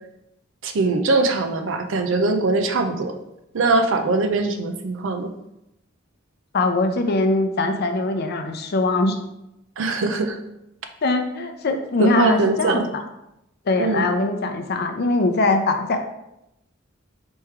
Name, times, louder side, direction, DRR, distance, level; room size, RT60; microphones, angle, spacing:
voice 1, 0.6-3.1 3.5-5.3 9.8-10.4 12.0-12.9 13.8-14.1, right 3 dB, 70° right, 7 dB, 0.5 m, -21 dB
voice 2, 6.5-9.2 11.0-13.0 13.7-16.0, left 2 dB, 55° left, 5 dB, 0.5 m, -22 dB
3.5 x 3.1 x 4.4 m, 0.85 s
head